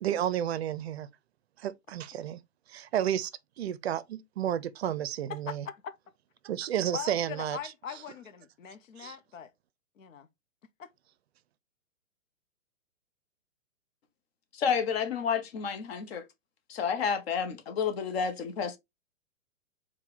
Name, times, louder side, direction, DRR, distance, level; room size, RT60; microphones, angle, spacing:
voice 1, 0.0-1.1 1.6-2.4 2.7-3.3 3.6-5.7 6.4-7.6 9.0-9.2, right 10 dB, 55° right, 0.5 m, -31 dB
voice 2, 5.3-6.0 6.9-9.5 10.0-10.3 10.8-10.9, left 8 dB, 80° left, 0.7 m, -41 dB
voice 3, 14.5-16.2 16.7-18.8, left 6 dB, 50° left, 0.9 m, -30 dB
4.4 x 2.3 x 3.6 m
hypercardioid pair, 130°, 39 cm